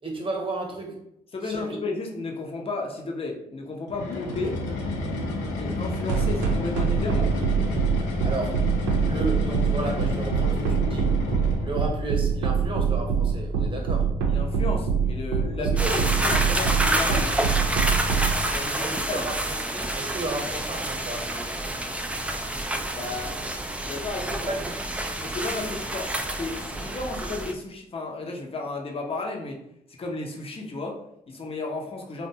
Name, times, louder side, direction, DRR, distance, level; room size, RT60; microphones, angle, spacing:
voice 1, 0.0-1.0 1.4-1.8 8.2-8.6 9.0-11.2 11.6-14.1 15.6-16.6 18.8-19.4 19.7-21.6 24.5-24.8, right 2 dB, 25° right, 0 dB, 0.9 m, -33 dB
voice 2, 1.3-4.6 5.6-7.3 14.3-17.4 18.5-19.3 22.9-23.4 23.7-24.5 24.8-24.9 25.2-29.6 30.0-32.3, left 3 dB, 30° left, 0 dB, 0.6 m, -33 dB
sound 1, 3.9-11.9, left 2 dB, 75° left, 0.5 m, -30 dB
sound 2, 6.1-18.3, right 6 dB, 85° right, 0.5 m, -23 dB
sound 3, 15.8-27.5, right 1 dB, 5° right, 0.3 m, -28 dB
2.5 x 2.1 x 2.7 m, 0.77 s
hypercardioid pair, 45°, 19 cm